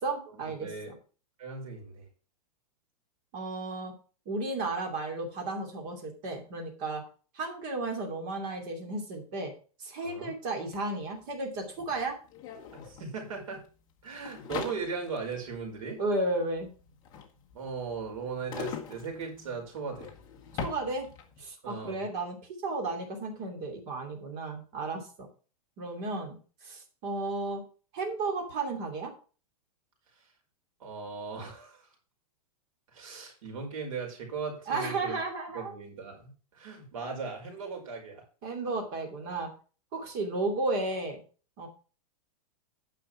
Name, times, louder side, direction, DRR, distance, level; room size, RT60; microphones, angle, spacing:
voice 1, 0.0-0.7 3.3-3.9 4.3-7.0 7.3-9.5 9.8-12.1 16.0-16.7 20.6-21.1 21.4-22.4 22.6-25.3 25.8-26.4 26.6-27.6 27.9-29.1 34.7-35.7 38.4-39.5 39.9-41.2 41.6-41.7, right 2 dB, 30° right, 2 dB, 2.8 m, -33 dB
voice 2, 0.6-0.9 1.4-2.1 10.0-10.3 12.7-13.6 14.0-16.0 17.5-20.1 21.6-22.0 30.8-31.9 32.9-35.2 35.5-38.2, right 5 dB, 60° right, 1 dB, 5.0 m, -38 dB
sound 1, 10.7-10.8 11.0-21.5, left 7 dB, 20° left, 1.2 m, -43 dB
9.5 x 6.1 x 5.9 m, 0.37 s
supercardioid pair, 180°, 19 cm